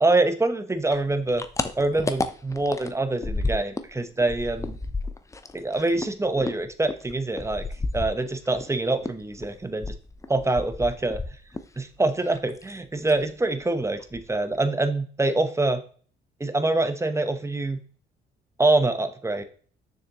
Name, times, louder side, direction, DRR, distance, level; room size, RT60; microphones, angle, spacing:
voice 1, 0.0-1.4 1.8-4.8 5.5-7.7 7.9-9.9 10.3-11.2 11.8-15.8 16.4-17.8 18.6-19.4, right 2 dB, 15° right, 9 dB, 0.9 m, -25 dB
sound 1, 0.9-8.7 9.0-11.8 12.0-12.7 13.0-13.3 13.6-13.7 14.0-14.6, left 3 dB, 15° left, 0.6 m, -32 dB
6.6 x 6.4 x 3.0 m, 0.42 s
cardioid pair, 90°, 20 cm